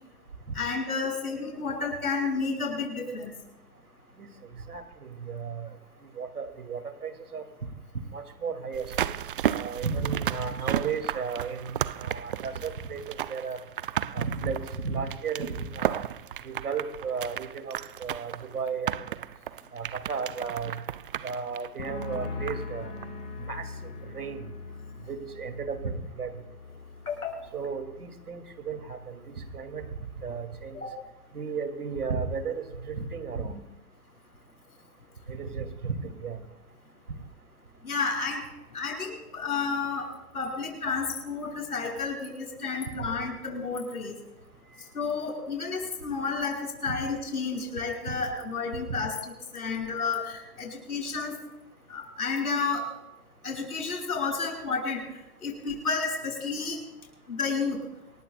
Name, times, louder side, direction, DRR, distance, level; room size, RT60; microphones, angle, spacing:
voice 1, 0.5-3.3 27.1-27.4 30.7-30.9 37.8-38.4 38.7-44.2 44.9-51.4 51.9-52.9 53.4-55.1 55.4-56.8 57.3-57.8, left 4 dB, 80° left, -1 dB, 7.5 m, -31 dB
voice 2, 4.7-5.7 6.2-7.4 8.1-9.1 9.5-13.6 14.1-16.0 16.4-19.1 19.7-20.8 21.2-22.9 23.4-24.4 25.1-26.3 27.5-29.8 30.2-30.8 31.3-33.6 35.3-36.4 46.9-47.0 48.1-48.2 48.9-49.0, right 5 dB, 80° right, 7 dB, 2.4 m, -34 dB
sound 1, 8.7-22.7 23.0-23.1, right 10 dB, 40° right, 0.4 m, -33 dB
sound 2, 21.8-29.2 29.5-30.1, left 3 dB, 60° left, 6.2 m, -41 dB
27.5 x 21.5 x 2.2 m, 0.96 s
figure-of-eight pair, 125°, 44 cm